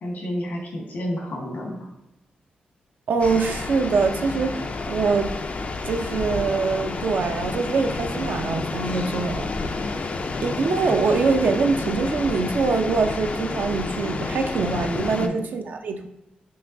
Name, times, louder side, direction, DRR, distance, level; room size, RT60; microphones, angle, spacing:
voice 1, 0.0-1.9 15.1-15.4, equal, 75° left, -1 dB, 1.3 m, -30 dB
voice 2, 3.1-5.3 5.9-9.6 10.4-16.1, right 4 dB, 70° right, 5 dB, 0.4 m, -24 dB
sound 1, 3.2-15.3, left 3 dB, 45° left, 0.4 m, -29 dB
5.5 x 2.3 x 2.6 m, 0.94 s
cardioid pair, 60°, 3 cm